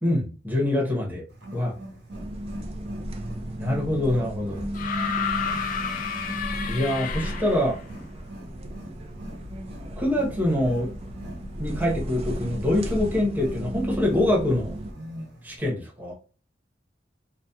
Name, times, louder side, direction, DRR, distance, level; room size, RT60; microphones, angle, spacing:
voice 1, 0.0-1.2 1.5-1.7 3.6-4.6 6.7-7.8 10.0-10.9 11.6-14.7 15.4-16.1, left 1 dB, 10° right, -3 dB, 0.8 m, -25 dB
Wild animals, 1.3-15.6, right 1 dB, 70° right, 1.0 m, -43 dB
sound 1, 2.1-14.9, equal, 35° right, 0.3 m, -34 dB
sound 2, 4.7-7.8 9.0-9.1, left 6 dB, 45° left, 0.3 m, -30 dB
2.7 x 2.2 x 2.2 m, 0.37 s
head